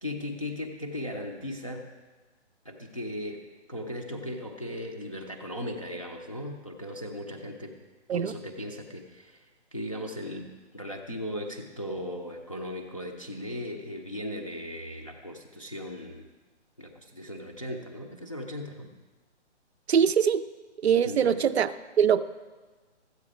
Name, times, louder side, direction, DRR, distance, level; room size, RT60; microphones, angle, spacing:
voice 1, 0.0-1.9 2.6-3.4 3.7-7.8 8.1-16.2 16.8-18.9 21.0-21.4, left 1 dB, 30° left, 0 dB, 0.5 m, -37 dB
voice 2, 19.9-20.4 20.8-21.7 22.0-22.2, right 7 dB, 65° right, 14 dB, 0.5 m, -22 dB
13.5 x 8.2 x 4.8 m, 1.3 s
hypercardioid pair, 180°, 35 cm